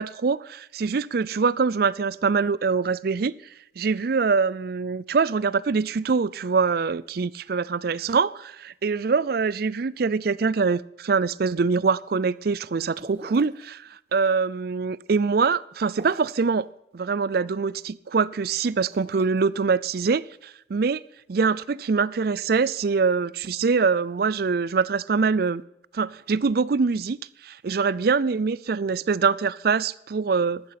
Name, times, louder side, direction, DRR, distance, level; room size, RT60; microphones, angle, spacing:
voice 1, 0.0-3.3 3.8-13.8 14.1-16.7 16.9-20.2 20.7-21.0 21.3-25.6 25.9-27.2 27.5-30.6, right 5 dB, 55° right, 0.4 m, -24 dB
sound 1, 13.0-13.7 15.9-16.5 18.6-19.2, right 1 dB, 35° right, 1.3 m, -45 dB
15.5 x 11.5 x 5.9 m
head